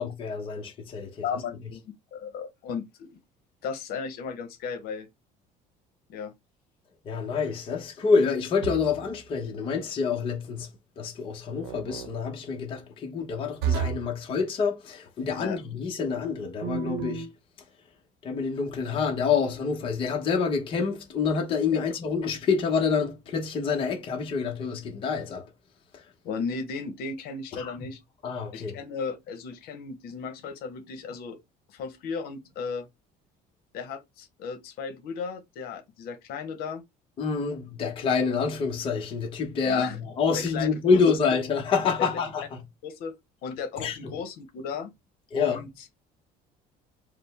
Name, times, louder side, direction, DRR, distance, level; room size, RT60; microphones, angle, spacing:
voice 1, 0.0-1.2 7.0-10.7 11.0-17.3 18.2-25.5 25.9-26.0 27.6-27.9 28.2-28.8 37.2-42.6 43.8-44.1 45.3-45.6, left 5 dB, 30° left, 0.9 m, -27 dB
voice 2, 1.2-1.8 2.1-3.2 3.6-5.1 6.1-6.3 15.4-15.6 21.7-21.8 26.2-28.0 28.5-31.4 31.7-32.9 33.7-36.8 39.6-40.0 40.4-41.0 42.0-42.1 42.8-43.1 43.4-44.9 45.3-45.7, left 5 dB, 65° left, 1.0 m, -35 dB
sound 1, 8.6-9.1 11.6-12.1 13.6-14.2 16.6-17.3, right 7 dB, 90° right, 0.9 m, -31 dB
4.9 x 2.1 x 3.5 m
cardioid pair, 165°, 17 cm